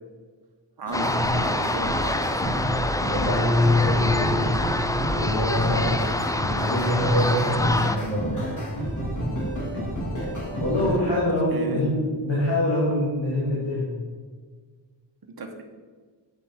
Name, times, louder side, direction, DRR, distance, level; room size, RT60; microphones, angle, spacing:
voice 1, 0.8-2.7 9.5-9.8 10.8-11.8 15.4-15.6, right 3 dB, 50° right, 3 dB, 1.1 m, -35 dB
sound 1, 0.9-11.0, equal, 40° left, 2.6 m, -30 dB
sound 2, 0.9-8.0, left 2 dB, 10° left, 0.4 m, -26 dB
voice 2, 3.1-4.5 5.1-6.0 6.4-8.5 10.6-14.0, left 1 dB, 65° left, -6 dB, 2.2 m, -24 dB
8.6 x 5.2 x 4.4 m, 1.5 s
cardioid pair, 55°, 47 cm